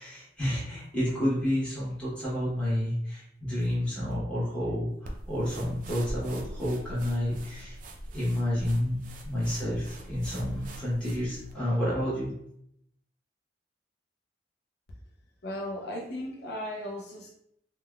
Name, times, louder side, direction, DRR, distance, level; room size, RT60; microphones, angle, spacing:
voice 1, 0.0-7.8 8.1-12.3, equal, 5° left, -9 dB, 1.1 m, -30 dB
sound 1, 5.1-11.6, right 1 dB, 45° right, 0.4 m, -42 dB
voice 2, 15.4-17.3, left 1 dB, 60° left, 0 dB, 0.5 m, -36 dB
3.5 x 2.2 x 2.3 m, 0.73 s
head